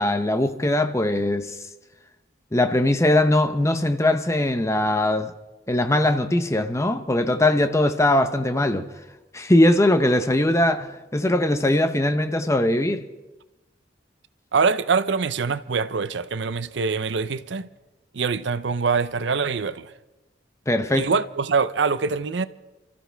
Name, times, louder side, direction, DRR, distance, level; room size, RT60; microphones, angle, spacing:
voice 1, 0.0-1.5 2.5-5.3 5.7-8.9 9.3-13.0 20.7-21.1, left 1 dB, 15° left, 0.8 m, -21 dB
voice 2, 14.5-17.7 18.1-19.9 20.9-22.5, right 5 dB, 75° right, 0.6 m, -24 dB
29.0 x 14.0 x 3.4 m
head